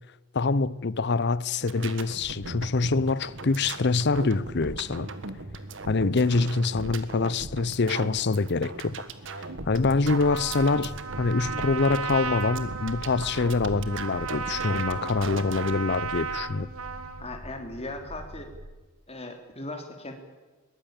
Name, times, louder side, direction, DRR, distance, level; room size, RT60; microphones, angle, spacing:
voice 1, 0.3-5.1 5.9-9.0 9.7-16.7, left 3 dB, 50° left, 0.6 m, -25 dB
sound 1, 1.6-15.7, right 3 dB, 60° right, 1.6 m, -39 dB
sound 2, 9.6-18.7, equal, 10° left, 5.2 m, -44 dB
Trumpet, 10.1-17.3, right 5 dB, 75° right, 1.7 m, -35 dB
voice 2, 17.2-18.5 19.1-20.1, left 2 dB, 30° left, 3.3 m, -38 dB
22.0 x 19.0 x 9.0 m
head